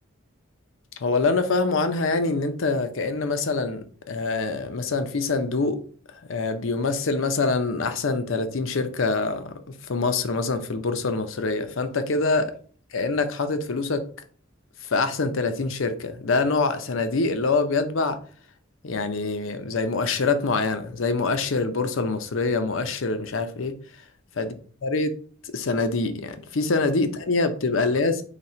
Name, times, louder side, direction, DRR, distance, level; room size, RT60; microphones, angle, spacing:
voice 1, 1.0-5.8 6.3-9.5 9.9-12.5 12.9-14.0 14.9-18.2 18.8-23.8 24.4-24.5 24.8-25.1 25.4-28.2, left 3 dB, 75° left, 0.6 m, -25 dB
4.2 x 2.8 x 4.3 m
head